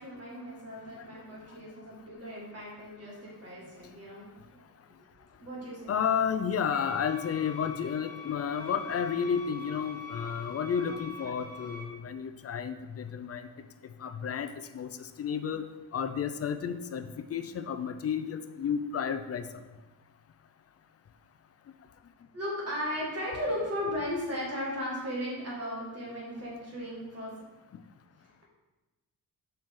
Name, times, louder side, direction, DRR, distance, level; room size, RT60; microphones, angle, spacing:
voice 1, 0.0-4.7 5.4-5.9 22.3-27.3, equal, 45° right, -4 dB, 2.0 m, -36 dB
voice 2, 5.9-13.5 14.0-15.6 15.9-19.4, left 7 dB, 45° left, 10 dB, 0.5 m, -32 dB
sound 1, 6.7-11.8, left 3 dB, 15° left, 2.7 m, -44 dB
7.6 x 5.8 x 3.7 m, 1.1 s
wide cardioid pair, 160°, 35 cm